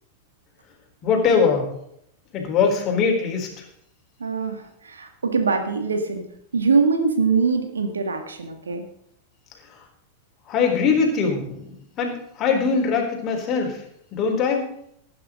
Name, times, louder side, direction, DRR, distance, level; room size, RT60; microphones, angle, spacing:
voice 1, 1.0-1.7 2.3-3.6 9.6-9.8 10.5-13.8 14.1-14.7, left 5 dB, 35° left, 1 dB, 4.0 m, -22 dB
voice 2, 4.2-6.2 6.5-8.8, right 4 dB, 70° right, 6 dB, 1.9 m, -23 dB
18.5 x 9.9 x 3.8 m, 0.70 s
figure-of-eight pair, 90°, 0 cm